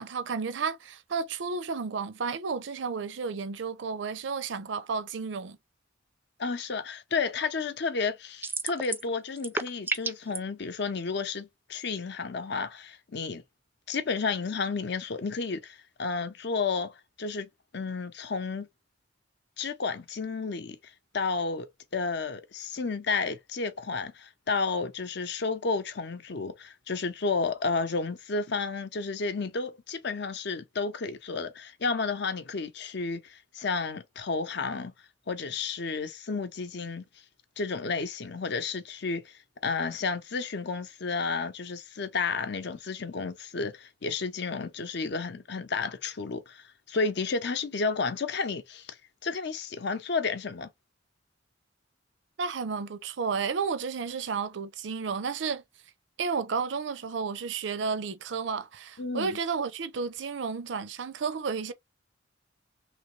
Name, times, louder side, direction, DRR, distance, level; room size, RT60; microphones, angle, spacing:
voice 1, 0.0-5.6 52.4-55.6 56.2-61.7, right 5 dB, 70° right, 0.5 m, -32 dB
voice 2, 6.4-13.4 13.9-17.5 17.7-18.7 19.6-20.8 21.1-21.7 21.9-34.9 35.3-37.0 37.6-39.3 39.6-49.0 49.2-50.7 59.0-59.4, left 4 dB, 65° left, 0.7 m, -32 dB
sound 1, 8.4-9.1 9.4-10.4, right 3 dB, 10° right, 0.4 m, -31 dB
3.3 x 3.0 x 3.1 m
head